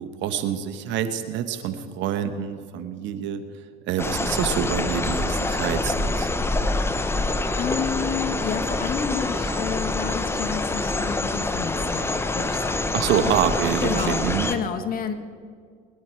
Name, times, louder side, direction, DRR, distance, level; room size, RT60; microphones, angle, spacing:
voice 1, 0.0-3.4 3.9-6.3 12.9-14.5, right 9 dB, 70° right, 10 dB, 1.2 m, -26 dB
sound 1, 4.0-14.5, left 2 dB, 10° left, 0.8 m, -26 dB
sound 2, 4.9-11.2, left 1 dB, 30° left, 2.6 m, -48 dB
voice 2, 7.5-13.3 13.8-15.1, left 7 dB, 45° left, 7 dB, 1.4 m, -30 dB
21.5 x 11.0 x 4.6 m, 2.1 s
supercardioid pair, 95°, 20 cm